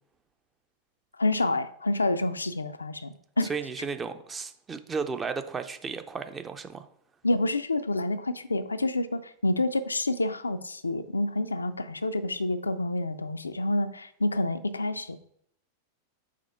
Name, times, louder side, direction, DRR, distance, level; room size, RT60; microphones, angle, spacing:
voice 1, 1.2-3.5 7.2-15.2, left 2 dB, 80° left, 0.4 m, -28 dB
voice 2, 3.5-6.8, right 5 dB, 20° right, 0.5 m, -34 dB
5.0 x 3.5 x 5.5 m
figure-of-eight pair, 90°, 0 cm